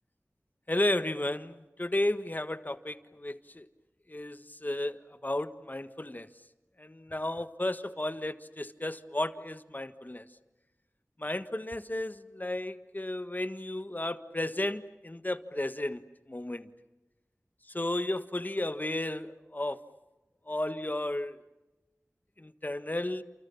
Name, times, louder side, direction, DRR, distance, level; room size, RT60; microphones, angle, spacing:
voice 1, 0.7-3.7 4.1-6.3 6.8-10.3 11.2-16.7 17.7-19.8 20.5-21.4 22.4-23.2, left 1 dB, 35° left, 11 dB, 1.5 m, -33 dB
29.0 x 28.0 x 7.2 m, 1.0 s
wide cardioid pair, 45°, 5 cm